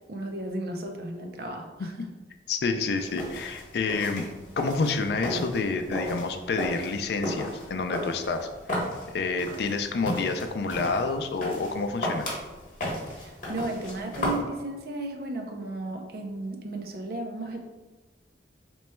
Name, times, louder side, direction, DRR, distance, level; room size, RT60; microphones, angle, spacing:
voice 1, 0.1-1.9 13.1-17.6, right 2 dB, 55° right, 3 dB, 0.5 m, -34 dB
voice 2, 2.5-4.3 4.6-8.5 8.8-8.9 9.1-12.3, left 4 dB, 65° left, 6 dB, 0.3 m, -28 dB
sound 1, 3.0-14.4, left 1 dB, 45° left, 1.0 m, -35 dB
3.0 x 2.2 x 4.2 m, 1.2 s
head